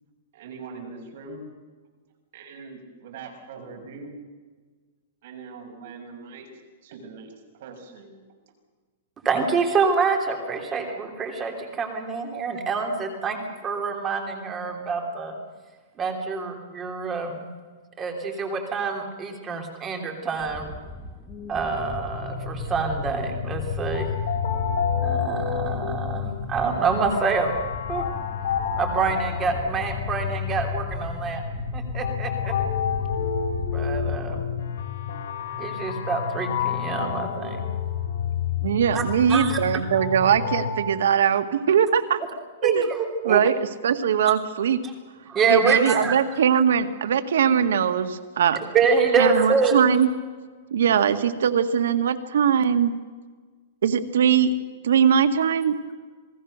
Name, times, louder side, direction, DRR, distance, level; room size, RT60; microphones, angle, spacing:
voice 1, 0.3-1.4 2.3-4.1 5.2-6.5 6.8-8.1, right 4 dB, 55° right, 4 dB, 6.3 m, -41 dB
voice 2, 9.2-15.3 16.0-17.5 18.0-20.7 21.5-24.1 25.0-27.5 27.9-28.1 28.8-31.4 31.7-32.5 33.7-34.4 35.6-37.6 38.9-39.0 39.3-39.6 42.6-43.4 44.3-44.4 45.3-46.1 48.7-49.8, right 5 dB, 20° right, 4 dB, 3.1 m, -26 dB
sound 1, 20.3-34.4, left 1 dB, 15° left, 7.7 m, -41 dB
sound 2, 21.7-40.7, left 7 dB, 60° left, 5.3 m, -29 dB
voice 3, 38.6-42.2 42.6-42.8 43.3-43.6 43.8-44.8 45.5-48.6 49.2-50.1 50.7-52.9 53.8-54.5 54.8-55.8, right 8 dB, 80° right, 8 dB, 1.8 m, -21 dB
28.0 x 19.5 x 6.6 m, 1.4 s
hypercardioid pair, 160°, 0 cm